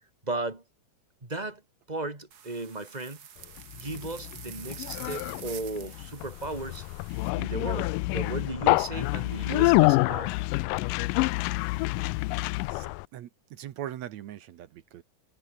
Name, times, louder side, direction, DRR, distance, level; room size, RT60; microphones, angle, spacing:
voice 1, 0.2-0.6 1.2-1.6 1.9-3.2 3.7-6.9 7.4-10.4, right 2 dB, 15° right, 2.4 m, -35 dB
sound 1, 2.3-7.3, right 8 dB, 85° right, 0.8 m, -46 dB
Conversation, 3.6-13.0, left 21 dB, 85° left, 2.2 m, -27 dB
voice 2, 12.7-15.0, right 11 dB, 65° right, 2.1 m, -41 dB
omnidirectional pair, 3.9 m